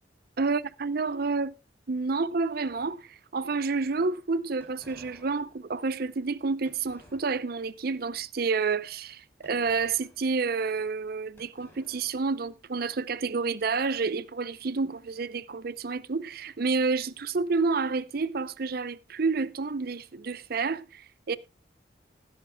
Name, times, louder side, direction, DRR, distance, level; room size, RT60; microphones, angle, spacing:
voice 1, 0.4-1.5 1.9-21.4, right 4 dB, 55° right, 0.6 m, -29 dB
sound 1, 2.6-3.4 4.6-7.7 8.1-8.4 9.4-11.1 11.4-12.7, left 1 dB, 15° left, 4.6 m, -58 dB
20.0 x 11.0 x 2.3 m
head